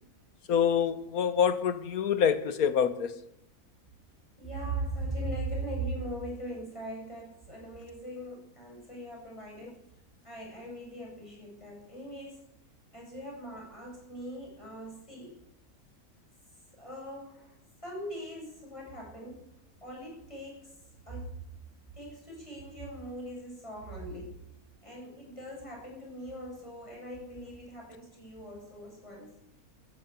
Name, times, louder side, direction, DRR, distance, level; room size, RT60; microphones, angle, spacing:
voice 1, 0.5-3.2, left 7 dB, 80° left, 1.6 m, -26 dB
voice 2, 4.4-9.8 10.2-12.4 12.9-15.4 16.7-19.5 19.8-20.8 21.1-21.4 21.9-24.4 24.8-29.3, right 1 dB, 20° left, 7.4 m, -40 dB
14.0 x 12.5 x 8.3 m
omnidirectional pair, 1.5 m